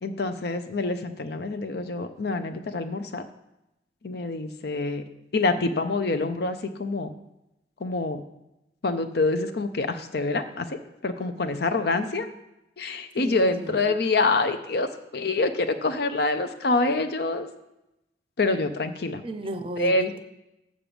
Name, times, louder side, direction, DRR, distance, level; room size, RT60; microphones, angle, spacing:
voice 1, 0.0-3.2 4.0-5.0 5.3-7.1 7.8-8.2 8.8-12.3 12.8-17.5 18.4-19.2 19.8-20.1, left 3 dB, 60° left, 8 dB, 0.6 m, -26 dB
voice 2, 13.2-13.9 19.2-20.2, right 1 dB, 30° right, 9 dB, 0.6 m, -35 dB
7.5 x 4.9 x 6.9 m, 0.90 s
head